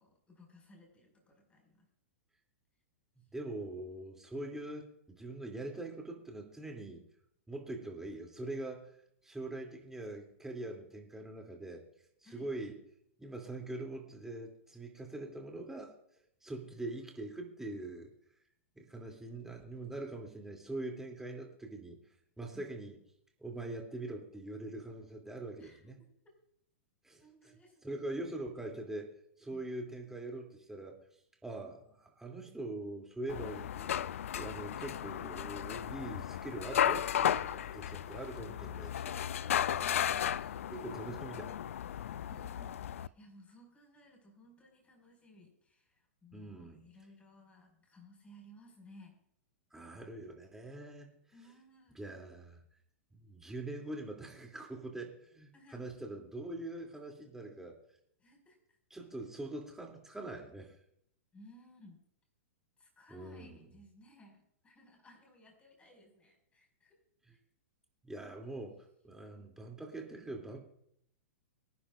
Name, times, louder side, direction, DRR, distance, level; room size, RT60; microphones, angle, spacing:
voice 1, 0.0-1.9 3.2-3.3 12.2-12.5 22.5-22.7 25.6-26.1 27.2-28.2 29.5-29.7 39.7-40.7 41.9-49.2 51.3-52.0 55.5-55.9 58.2-58.6 61.3-62.0 62.8-67.0 67.3-67.4 69.4-69.5, equal, 15° left, 1 dB, 5.7 m, -59 dB
voice 2, 3.3-7.0 7.5-8.9 9.2-11.8 12.3-12.8 13.2-15.9 16.4-18.1 18.7-22.0 22.4-23.0 23.4-26.0 27.0-27.2 27.8-31.0 31.4-33.9 34.3-39.8 40.7-41.5 46.3-46.8 49.7-51.1 52.0-52.6 53.1-57.8 58.9-60.7 63.1-63.6 68.0-70.6, right 2 dB, 5° right, 1 dB, 2.8 m, -43 dB
sound 1, 33.3-43.1, left 10 dB, 75° left, 0.4 m, -35 dB
24.5 x 10.5 x 2.5 m, 0.73 s
hypercardioid pair, 115°, 7 cm